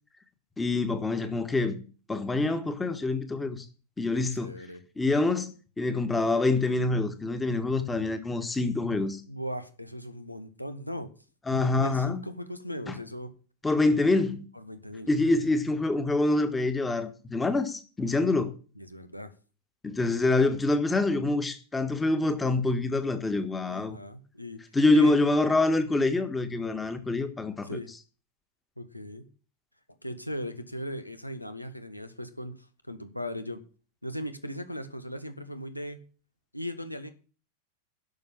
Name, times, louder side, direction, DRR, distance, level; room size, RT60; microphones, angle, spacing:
voice 1, 0.6-1.8 2.1-3.7 4.0-4.5 5.0-9.2 11.5-12.2 12.9-13.0 13.6-14.4 15.1-18.5 19.8-24.0 24.7-27.8, left 2 dB, 10° left, 1.6 m, -26 dB
voice 2, 4.1-4.8 9.3-11.1 11.5-13.3 14.5-15.3 18.8-19.3 23.7-24.6 24.9-25.2 27.6-27.9 28.8-29.3 30.0-33.6 34.0-36.0 36.5-37.1, equal, 90° left, 1.5 m, -38 dB
12.0 x 6.8 x 8.8 m
figure-of-eight pair, 90°, 0 cm